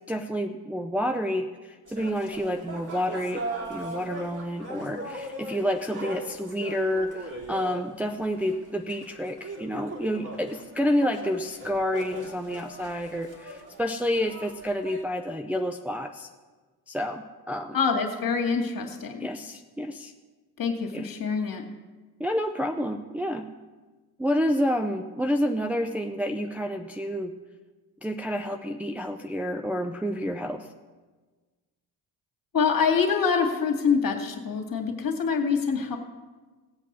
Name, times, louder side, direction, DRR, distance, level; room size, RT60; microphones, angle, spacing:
voice 1, 0.1-3.4 3.7-16.3 16.9-17.8 19.2-20.1 20.9-21.1 22.2-23.5 24.2-27.3 28.0-30.7, equal, 5° right, 4 dB, 0.6 m, -29 dB
sound 1, 1.9-15.0, right 2 dB, 40° right, 2.9 m, -39 dB
voice 2, 17.7-19.3 20.6-21.6 32.5-36.0, left 5 dB, 40° left, 3 dB, 2.2 m, -25 dB
17.0 x 8.2 x 4.3 m, 1.3 s
hypercardioid pair, 50°, 50 cm